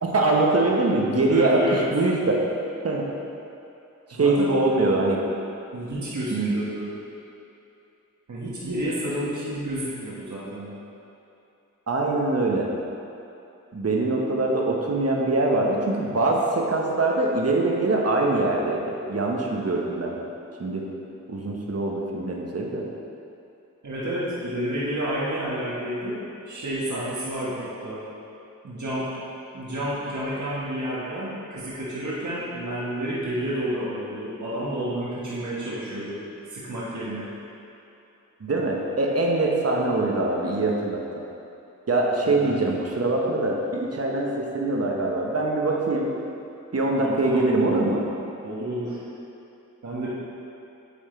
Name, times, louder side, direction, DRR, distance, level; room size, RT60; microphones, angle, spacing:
voice 1, 0.0-2.4 2.8-3.1 4.1-5.2 6.3-6.5 11.9-12.7 13.7-20.2 20.6-20.9 21.3-22.8 38.4-41.2 41.9-46.1 46.7-48.0, right 2 dB, 50° right, -1 dB, 1.0 m, -23 dB
voice 2, 1.2-1.8 4.1-4.5 5.7-6.9 8.3-10.7 23.8-28.0 28.6-29.1 29.5-36.2 36.5-37.3 42.2-42.6 46.9-47.4 48.4-49.0 49.8-50.1, equal, 65° right, -8 dB, 1.4 m, -30 dB
8.4 x 3.6 x 4.4 m, 2.8 s
cardioid pair, 45°, 32 cm